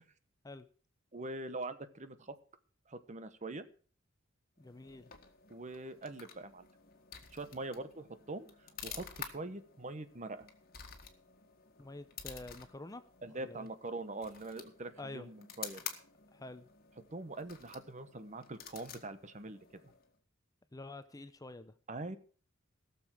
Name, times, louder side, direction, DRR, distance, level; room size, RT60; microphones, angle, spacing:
voice 1, 1.1-2.3 2.9-3.6 5.5-6.7 7.3-8.5 8.8-10.5 13.2-15.8 17.1-19.8 21.9-22.2, right 2 dB, 40° right, 11 dB, 1.1 m, -43 dB
sound 1, 4.6-20.2, left 8 dB, 50° left, 1.8 m, -51 dB
voice 2, 4.6-5.1 11.8-13.0 13.3-13.7 15.0-15.3 16.3-16.7 20.7-21.7, left 2 dB, 20° left, 11 dB, 0.7 m, -47 dB
17.0 x 7.1 x 6.2 m, 0.41 s
head